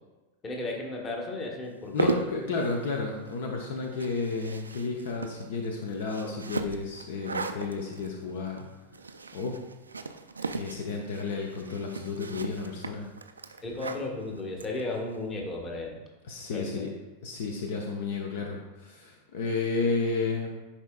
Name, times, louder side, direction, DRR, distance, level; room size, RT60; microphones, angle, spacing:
voice 1, 0.4-2.1 13.6-16.0 16.5-16.9, left 2 dB, 20° left, 0 dB, 1.3 m, -34 dB
sound 1, 1.7-15.2, right 4 dB, 75° right, 0.3 m, -37 dB
voice 2, 1.9-8.7 9.3-9.6 10.5-13.1 16.2-16.9 17.2-20.5, left 4 dB, 55° left, 1 dB, 0.7 m, -32 dB
10.0 x 4.3 x 2.3 m, 1.2 s
figure-of-eight pair, 90°, 0 cm